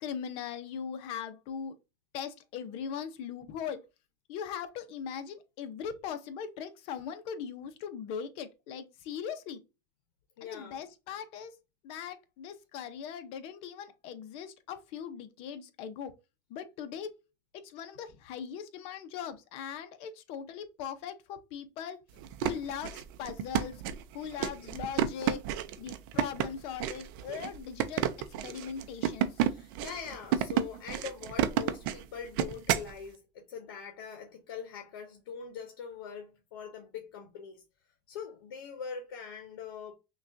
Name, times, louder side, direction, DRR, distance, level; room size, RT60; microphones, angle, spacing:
voice 1, 0.0-1.7 2.1-3.8 4.3-9.6 10.4-11.5 11.8-16.1 16.5-17.1 17.5-22.0 22.4-23.8 24.1-25.4 25.8-28.0 28.4-29.3, left 7 dB, 55° left, 0.7 m, -40 dB
voice 2, 10.4-10.8 29.4-37.6 38.1-39.9, left 7 dB, 90° left, 0.8 m, -43 dB
sound 1, 22.2-32.9, right 10 dB, 70° right, 0.5 m, -31 dB
5.9 x 2.4 x 2.6 m
supercardioid pair, 130°, 12 cm